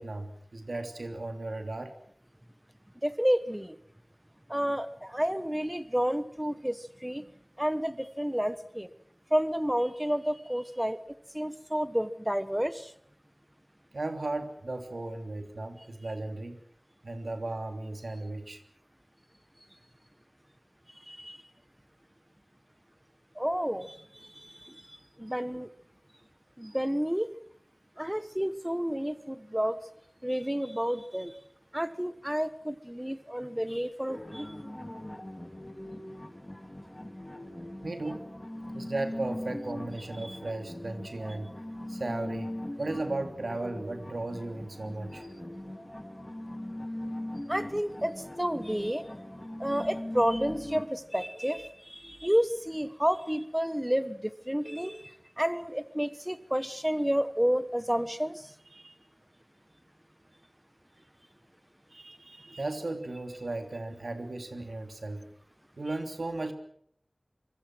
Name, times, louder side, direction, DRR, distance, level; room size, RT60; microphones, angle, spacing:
voice 1, 0.0-1.9 13.9-16.6 17.0-18.6 37.8-38.2 38.7-41.5 41.9-45.2 58.7-58.9 61.9-65.2 65.8-66.5, right 2 dB, 90° right, 6 dB, 3.1 m, -36 dB
voice 2, 3.0-3.8 4.5-7.3 7.6-8.9 9.3-11.0 11.3-12.9 21.1-21.4 23.3-25.7 26.6-27.3 28.0-29.8 30.2-31.3 31.7-34.5 40.2-40.4 47.5-49.0 49.6-58.5, equal, 10° right, 13 dB, 1.2 m, -30 dB
sound 1, 34.1-50.8, left 1 dB, 20° left, 3.8 m, -40 dB
26.0 x 24.0 x 6.2 m, 0.66 s
wide cardioid pair, 55°, 0 cm